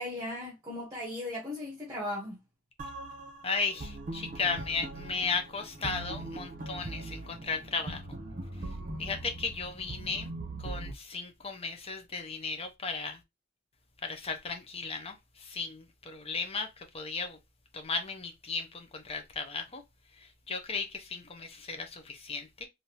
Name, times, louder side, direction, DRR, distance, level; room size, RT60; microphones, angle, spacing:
voice 1, 0.0-2.4, left 1 dB, 15° right, 1.0 m, -37 dB
sound 1, 2.8-10.9, right 2 dB, 40° right, 0.8 m, -41 dB
voice 2, 3.4-8.0 9.0-10.3 10.6-13.2 14.0-17.4 17.7-19.8 20.5-22.7, left 4 dB, 25° left, 0.6 m, -35 dB
3.5 x 2.6 x 2.8 m
head